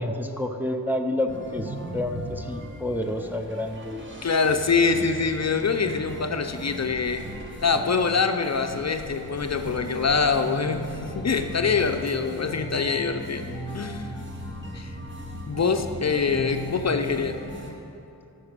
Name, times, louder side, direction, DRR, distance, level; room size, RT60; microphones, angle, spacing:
voice 1, 0.0-4.1, left 1 dB, 5° right, 4 dB, 0.6 m, -29 dB
sound 1, 1.3-17.7, right 1 dB, 30° right, 1.4 m, -37 dB
voice 2, 4.2-7.2 7.6-13.4 13.7-14.1 14.7-15.0 15.5-17.4 17.6-17.7, left 5 dB, 45° left, 6 dB, 0.6 m, -24 dB
12.0 x 6.0 x 6.7 m, 2.8 s
wide cardioid pair, 95°, 38 cm